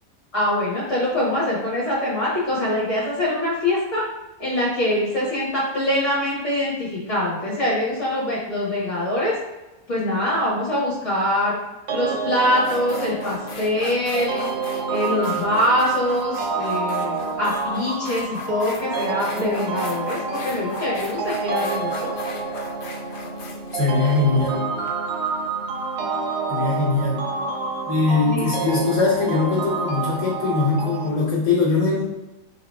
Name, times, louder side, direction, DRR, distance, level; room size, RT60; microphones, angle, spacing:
voice 1, 0.3-4.0 4.4-9.3 9.9-11.6 11.9-14.5 14.9-22.1 28.2-28.5, left 1 dB, 45° left, -7 dB, 1.6 m, -24 dB
sound 1, 11.9-31.1, right 4 dB, 85° right, 0.5 m, -28 dB
sound 2, 12.0-12.1 12.6-24.9, left 4 dB, 85° left, 0.4 m, -38 dB
voice 2, 23.7-24.7 26.5-27.2 27.8-32.0, left 4 dB, 20° left, -8 dB, 1.5 m, -21 dB
4.0 x 2.9 x 4.2 m, 1.1 s
omnidirectional pair, 1.8 m